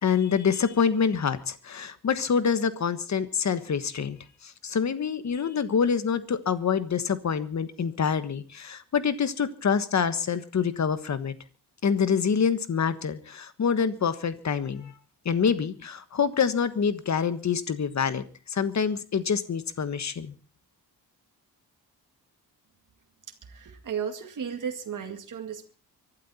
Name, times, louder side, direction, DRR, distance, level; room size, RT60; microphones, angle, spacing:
voice 1, 0.0-4.2 4.4-11.3 11.8-14.9 15.2-18.2 18.5-20.3, left 6 dB, 45° left, 12 dB, 1.4 m, -26 dB
voice 2, 23.4-25.7, right 7 dB, 50° right, 4 dB, 2.1 m, -34 dB
24.5 x 12.0 x 4.2 m, 0.35 s
wide cardioid pair, 155°, 39 cm